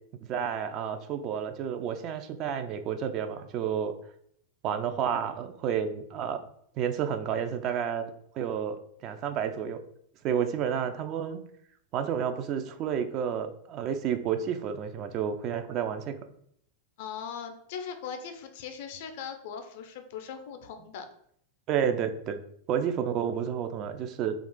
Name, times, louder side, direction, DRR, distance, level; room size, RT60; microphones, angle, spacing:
voice 1, 0.3-3.9 4.6-6.4 6.8-9.8 10.2-11.4 11.9-16.1 21.7-22.4 22.7-24.3, right 8 dB, 35° right, 8 dB, 0.3 m, -30 dB
voice 2, 17.0-21.1, left 7 dB, 50° left, 6 dB, 0.4 m, -39 dB
2.4 x 2.3 x 3.7 m, 0.69 s
figure-of-eight pair, 90°, 0 cm